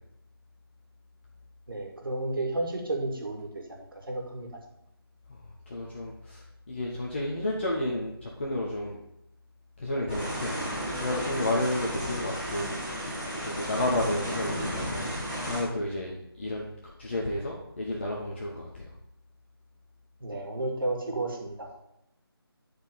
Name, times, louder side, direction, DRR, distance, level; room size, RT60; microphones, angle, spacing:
voice 1, 1.7-4.5 20.2-21.7, right 2 dB, 60° right, 1 dB, 2.2 m, -32 dB
voice 2, 5.7-9.0 9.8-10.7 11.0-12.7 13.4-15.1 15.5-16.1 16.4-16.7 17.0-18.9, left 1 dB, 30° left, -3 dB, 1.0 m, -31 dB
sound 1, 10.1-15.6, equal, 5° left, 0.4 m, -33 dB
10.0 x 4.4 x 5.2 m, 0.81 s
figure-of-eight pair, 160°, 13 cm